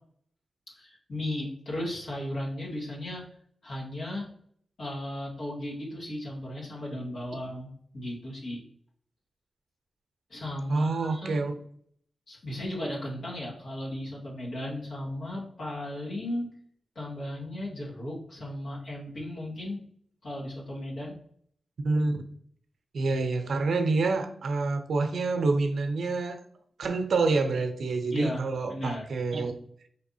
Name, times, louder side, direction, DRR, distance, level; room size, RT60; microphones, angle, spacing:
voice 1, 0.8-3.2 3.6-4.3 4.8-8.6 10.3-11.4 12.3-16.5 17.0-19.8 20.2-21.1 28.1-29.1, left 1 dB, 70° left, -4 dB, 1.8 m, -35 dB
voice 2, 10.7-11.5 21.8-22.2 22.9-26.4 26.8-29.5, right 3 dB, 75° right, 6 dB, 0.6 m, -27 dB
4.4 x 3.3 x 2.7 m, 0.62 s
cardioid pair, 50°, 0 cm